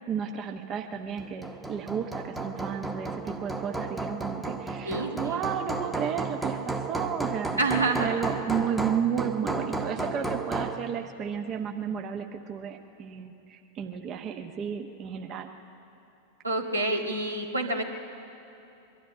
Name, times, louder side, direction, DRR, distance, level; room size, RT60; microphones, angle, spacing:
voice 1, 0.1-7.5 8.0-15.5, right 8 dB, 30° right, 4 dB, 1.0 m, -32 dB
Hammer, 1.2-10.8, right 3 dB, 5° right, 1.2 m, -33 dB
voice 2, 4.8-5.4 7.6-8.1 16.4-17.8, right 2 dB, 80° right, 1 dB, 1.8 m, -27 dB
22.0 x 13.0 x 9.7 m, 2.8 s
figure-of-eight pair, 90°, 0 cm